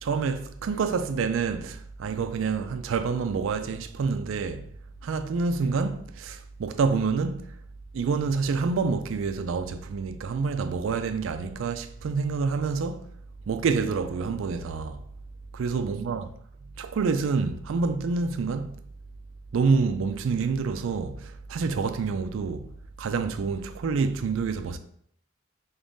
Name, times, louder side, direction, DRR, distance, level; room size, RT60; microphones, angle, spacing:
voice 1, 0.0-4.7 5.0-7.6 7.9-13.1 13.5-15.0 15.5-16.3 16.8-18.8 19.5-22.7 23.0-24.8, right 4 dB, 70° right, 0.3 m, -27 dB
3.6 x 3.5 x 2.6 m
head